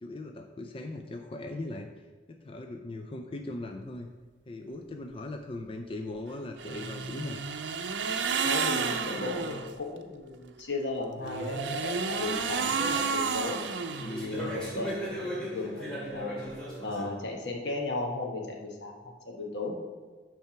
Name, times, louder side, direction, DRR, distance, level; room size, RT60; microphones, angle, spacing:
voice 1, 0.0-1.9 2.3-4.1 4.5-7.4, left 2 dB, 30° left, 4 dB, 0.4 m, -39 dB
sound 1, 6.6-9.7 11.2-14.5, right 5 dB, 85° right, 0.6 m, -31 dB
voice 2, 8.4-13.6 14.0-16.4 16.8-19.7, left 2 dB, 80° left, 0 dB, 1.2 m, -35 dB
sound 2, 11.4-13.3 13.9-17.1, equal, 5° left, 2.3 m, -38 dB
8.6 x 3.4 x 5.8 m, 1.4 s
head